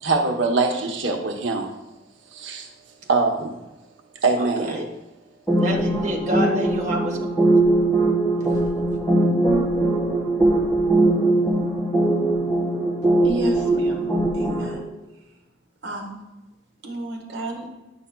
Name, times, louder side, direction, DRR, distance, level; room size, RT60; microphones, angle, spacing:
voice 1, 0.0-1.7 2.3-2.7 3.1-3.5 4.2-4.8, right 3 dB, 85° right, 3 dB, 0.9 m, -22 dB
voice 2, 4.4-4.9 5.6-7.2 13.4-13.5 14.0-14.2 14.6-15.0, equal, 40° right, 0 dB, 1.1 m, -29 dB
sound 1, 5.5-14.8, right 2 dB, 10° left, 1.6 m, -21 dB
voice 3, 13.2-14.1 14.3-14.8 15.8-16.2 16.8-17.7, right 1 dB, 65° right, 1 dB, 1.2 m, -31 dB
9.4 x 5.7 x 2.2 m, 1.0 s
head